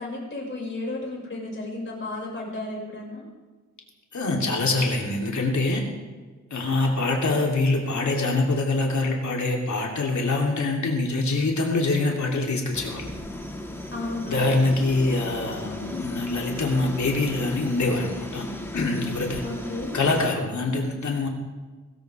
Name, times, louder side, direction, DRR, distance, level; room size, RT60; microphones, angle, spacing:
voice 1, 0.0-3.2 13.9-14.4 19.4-20.0, left 2 dB, 40° left, -2 dB, 5.7 m, -33 dB
voice 2, 4.1-5.8 6.5-13.1 14.3-18.5 18.7-19.4 19.9-21.3, left 2 dB, 70° left, 0 dB, 3.0 m, -24 dB
sound 1, 12.7-20.3, left 1 dB, 10° left, 1.9 m, -36 dB
19.5 x 16.5 x 3.5 m, 1.3 s
wide cardioid pair, 120°, 30 cm